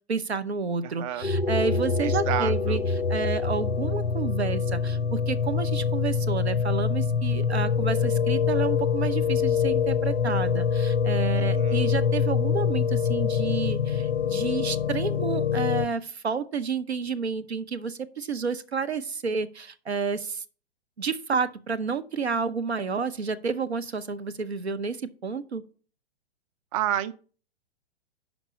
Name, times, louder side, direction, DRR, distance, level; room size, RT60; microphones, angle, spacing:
voice 1, 0.1-20.4 21.0-25.6, right 5 dB, 80° right, 0.8 m, -30 dB
sound 1, 1.2-15.9, left 6 dB, 85° left, 0.6 m, -25 dB
voice 2, 2.0-2.8 11.3-11.9 26.7-27.2, right 11 dB, 35° right, 0.4 m, -30 dB
6.1 x 5.1 x 6.9 m
figure-of-eight pair, 110°, 32 cm